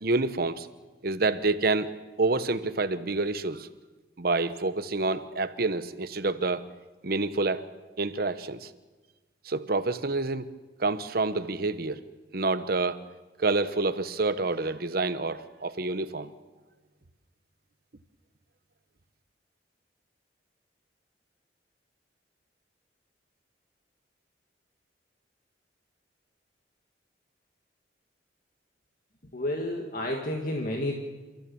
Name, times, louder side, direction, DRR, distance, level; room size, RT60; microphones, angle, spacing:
voice 1, 0.0-0.7 1.0-1.9 2.2-3.7 4.2-6.7 7.0-7.7 8.0-8.7 9.4-10.5 10.8-12.0 12.3-13.0 13.4-16.3, right 3 dB, 55° right, 12 dB, 1.0 m, -28 dB
voice 2, 29.3-30.9, left 1 dB, 50° left, 1 dB, 1.9 m, -30 dB
29.0 x 14.5 x 7.1 m, 1.3 s
head